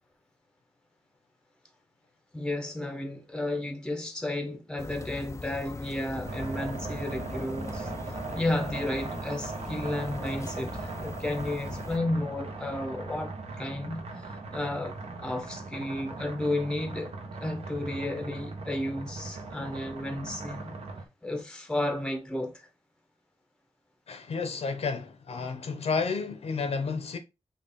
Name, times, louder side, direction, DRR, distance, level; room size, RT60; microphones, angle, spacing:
voice 1, 2.3-17.1 17.4-20.8 21.2-22.7, left 1 dB, 5° left, 0.7 m, -33 dB
sound 1, 4.8-12.0, left 3 dB, 25° left, 0.4 m, -41 dB
sound 2, 6.2-21.0, right 3 dB, 65° right, 1.0 m, -39 dB
voice 2, 24.1-27.2, left 4 dB, 65° left, 0.8 m, -31 dB
5.6 x 2.4 x 3.5 m
wide cardioid pair, 145°, 11 cm